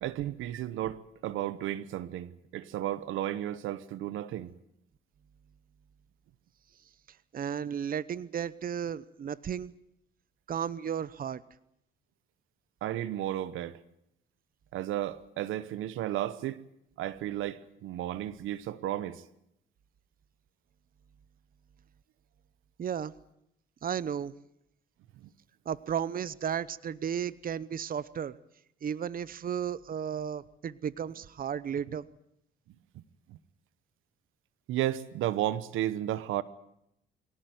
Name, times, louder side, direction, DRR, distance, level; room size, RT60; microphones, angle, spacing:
voice 1, 0.0-4.5 12.8-13.8 14.7-16.6 17.0-19.2 32.9-33.0 33.3-33.4 34.7-36.4, right 13 dB, 90° right, 1.1 m, -33 dB
voice 2, 7.3-9.7 10.5-11.4 22.8-23.1 23.8-24.3 25.7-28.4 28.8-32.1, right 8 dB, 45° right, 0.9 m, -34 dB
23.5 x 18.0 x 9.3 m
cardioid pair, 90°, 20 cm